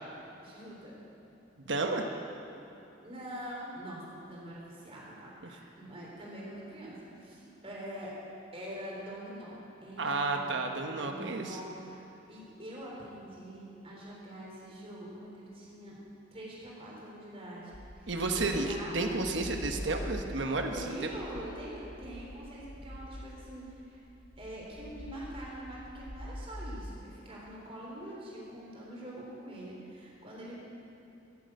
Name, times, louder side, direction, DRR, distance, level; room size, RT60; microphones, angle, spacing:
voice 1, 0.4-0.9 3.0-8.1 8.5-12.0 12.3-16.0 16.3-18.1 18.4-19.0 20.7-24.0 24.4-30.6, right 1 dB, 30° right, -5 dB, 3.7 m, -44 dB
voice 2, 1.6-2.1 10.0-11.6 18.1-20.7, right 3 dB, 75° right, 3 dB, 1.1 m, -31 dB
sound 1, 17.7-26.9, left 1 dB, 45° left, 1.1 m, -45 dB
13.5 x 7.9 x 7.9 m, 2.9 s
head